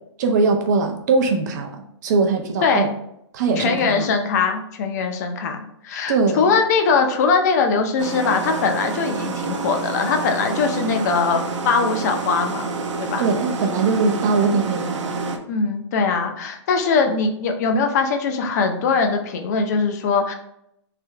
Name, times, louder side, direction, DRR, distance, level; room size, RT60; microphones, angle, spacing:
voice 1, 0.2-2.9 3.3-4.1 6.1-6.5 13.2-14.9, right 4 dB, 35° right, 4 dB, 0.6 m, -21 dB
voice 2, 3.6-12.7 13.0-13.2 15.5-20.3, left 5 dB, 35° left, 5 dB, 0.6 m, -21 dB
sound 1, 8.0-15.4, right 4 dB, 85° right, 0.7 m, -28 dB
3.4 x 3.2 x 4.6 m, 0.77 s
hypercardioid pair, 165°, 15 cm